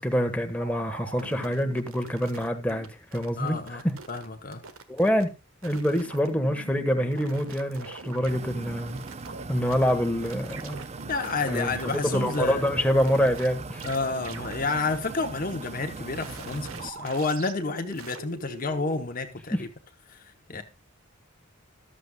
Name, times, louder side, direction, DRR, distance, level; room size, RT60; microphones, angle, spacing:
voice 1, 0.0-3.6 3.8-3.9 4.9-5.3 5.6-9.0 9.5-10.8 11.5-13.8 19.5-19.6 20.5-20.6, equal, 5° left, 1.4 m, -26 dB
sound 1, 0.6-2.9 3.1-4.3 4.5-5.2 5.6-9.9 10.2-13.5 13.8-14.0 14.2-14.5 16.1-19.0, right 3 dB, 85° right, 1.4 m, -43 dB
voice 2, 3.4-4.6 11.1-12.6 13.8-19.7 20.1-20.6, left 3 dB, 45° left, 1.0 m, -30 dB
sound 2, 8.3-16.9, right 3 dB, 35° right, 0.6 m, -40 dB
14.0 x 12.5 x 2.3 m
head